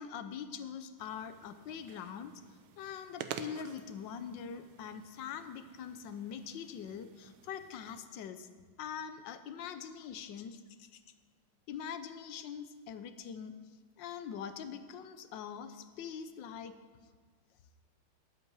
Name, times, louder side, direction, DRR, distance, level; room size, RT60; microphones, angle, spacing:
voice 1, 0.0-2.3 2.8-8.5 8.8-11.0 11.7-13.5 14.0-16.7, left 7 dB, 65° left, 10 dB, 1.4 m, -43 dB
sound 1, 1.0-8.0, right 9 dB, 75° right, 1.5 m, -50 dB
20.0 x 8.4 x 4.7 m, 1.5 s
omnidirectional pair, 2.3 m